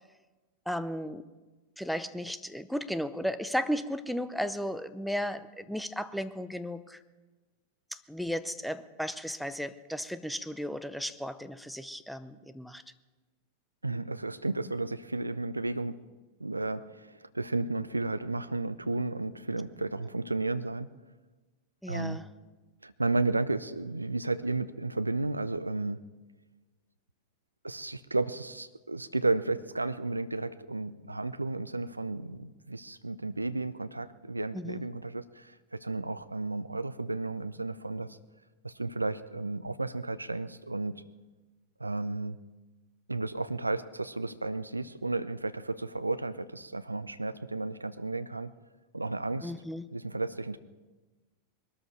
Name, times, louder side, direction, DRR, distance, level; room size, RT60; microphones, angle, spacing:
voice 1, 0.7-1.3 1.8-7.0 7.9-12.8 21.8-22.3 34.5-34.8 49.4-49.9, equal, ahead, 13 dB, 0.7 m, -35 dB
voice 2, 13.8-16.0 16.4-20.9 21.9-22.2 22.8-26.0 27.6-38.2 38.6-41.0 41.8-42.4 43.1-48.5 48.9-49.5 49.9-50.6, right 2 dB, 85° right, 14 dB, 0.6 m, -33 dB
21.5 x 13.0 x 4.6 m, 1.2 s
figure-of-eight pair, 90°, 0 cm